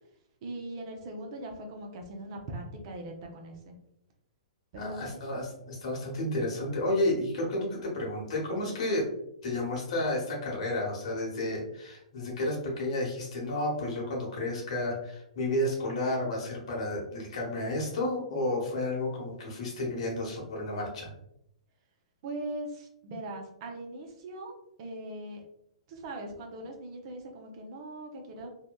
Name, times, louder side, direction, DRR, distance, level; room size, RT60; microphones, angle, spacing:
voice 1, 0.4-3.8 4.7-5.2 22.2-24.5 24.8-25.4 25.9-28.5, right 1 dB, 45° right, 2 dB, 0.5 m, -40 dB
voice 2, 4.8-9.1 9.4-21.1, left 1 dB, 60° left, -2 dB, 1.0 m, -31 dB
2.7 x 2.1 x 2.2 m, 0.78 s
hypercardioid pair, 125°, 4 cm